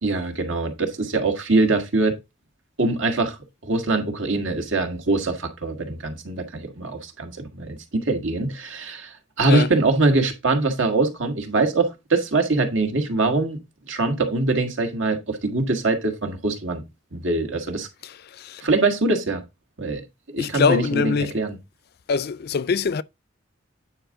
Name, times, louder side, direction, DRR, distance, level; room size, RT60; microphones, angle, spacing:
voice 1, 0.0-2.2 2.8-3.4 3.6-13.6 13.9-16.8 17.1-17.9 18.6-19.4 19.8-20.0 20.3-21.6, right 3 dB, 85° right, 1.9 m, -23 dB
voice 2, 18.0-18.6 20.4-21.4 22.1-23.0, left 5 dB, 55° left, 0.4 m, -23 dB
9.2 x 4.9 x 3.8 m
head